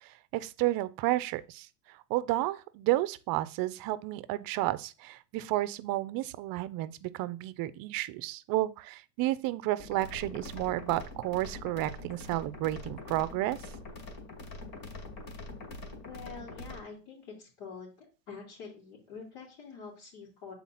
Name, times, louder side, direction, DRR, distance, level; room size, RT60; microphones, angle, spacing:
voice 1, 0.0-1.7 2.1-13.6, right 16 dB, 50° right, 0.6 m, -31 dB
sound 1, 9.8-16.8, left 2 dB, 45° left, 2.1 m, -44 dB
voice 2, 16.0-17.9 18.3-20.5, left 5 dB, 70° left, 3.0 m, -46 dB
7.0 x 4.3 x 4.1 m
supercardioid pair, 115°, 46 cm